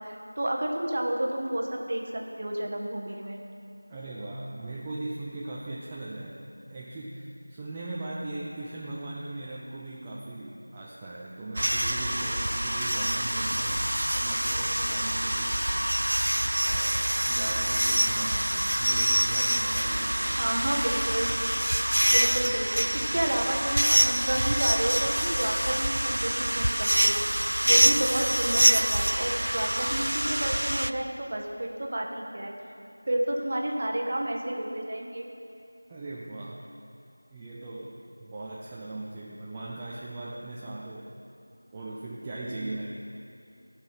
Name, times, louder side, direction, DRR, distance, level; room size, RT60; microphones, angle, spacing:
voice 1, 0.0-3.4 20.4-21.3 22.0-27.4 27.6-32.5 33.1-35.2, right 1 dB, 30° right, 1 dB, 0.9 m, -31 dB
voice 2, 3.9-15.6 16.2-16.3 16.6-20.4 23.1-23.2 35.9-36.7 37.3-41.1 41.7-42.9, right 2 dB, 10° right, -6 dB, 0.3 m, -39 dB
sound 1, 11.6-30.9, right 1 dB, 85° right, 0.4 m, -26 dB
15.5 x 5.7 x 6.2 m, 2.5 s
figure-of-eight pair, 175°, 0 cm